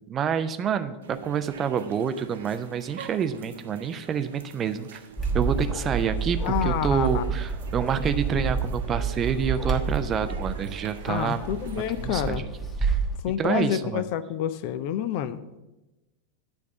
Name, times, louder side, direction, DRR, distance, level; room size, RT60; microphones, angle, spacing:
voice 1, 0.1-5.0 5.3-11.4 11.8-12.5 12.8-13.0 13.4-14.0, right 7 dB, 25° right, 10 dB, 0.5 m, -28 dB
sound 1, 1.0-12.3, right 6 dB, 65° right, 0.7 m, -46 dB
Bark, 5.2-13.2, right 4 dB, 15° left, 1.2 m, -29 dB
voice 2, 6.4-7.3 11.1-12.4 13.2-15.4, left 10 dB, 45° left, 14 dB, 0.4 m, -28 dB
9.4 x 3.5 x 6.9 m, 1.0 s
figure-of-eight pair, 90°, 0 cm